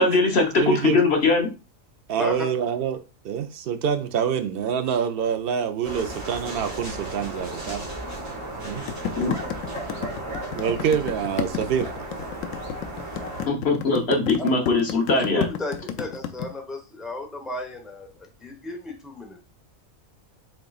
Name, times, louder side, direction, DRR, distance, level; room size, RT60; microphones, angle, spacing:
voice 1, 0.0-1.5 9.2-9.3 13.5-15.4, left 3 dB, 55° left, 1.3 m, -21 dB
voice 2, 0.6-1.0 2.1-3.0 3.2-7.9 8.6-8.8 10.5-11.9, right 7 dB, 60° right, 0.7 m, -26 dB
sound 1, 5.8-13.5, right 1 dB, 20° right, 1.7 m, -35 dB
sound 2, 8.9-16.5, left 9 dB, 80° left, 1.0 m, -31 dB
voice 3, 15.3-19.4, left 2 dB, ahead, 0.8 m, -34 dB
5.9 x 3.8 x 2.4 m
omnidirectional pair, 1.4 m